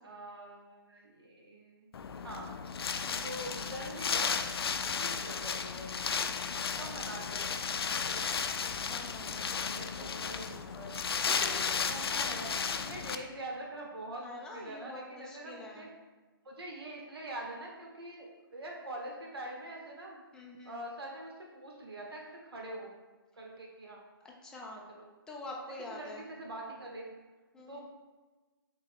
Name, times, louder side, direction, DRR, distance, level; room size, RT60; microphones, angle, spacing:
voice 1, 0.0-1.9 2.2-2.5 3.1-4.5 4.8-6.0 6.8-7.7 9.7-11.1 11.9-15.9 16.4-20.2 20.6-22.9 23.3-24.0 24.6-25.1 25.9-27.1 27.7-27.8, right 1 dB, 90° right, -1 dB, 1.2 m, -44 dB
Wind, 1.9-13.2, left 6 dB, 90° left, 0.4 m, -34 dB
voice 2, 8.9-10.4 11.2-12.0 14.2-15.9 20.3-20.8 24.4-24.8 25.3-26.3 27.5-27.8, left 2 dB, 5° left, -2 dB, 0.4 m, -46 dB
3.6 x 3.5 x 3.6 m, 1.3 s
hypercardioid pair, 150°, 12 cm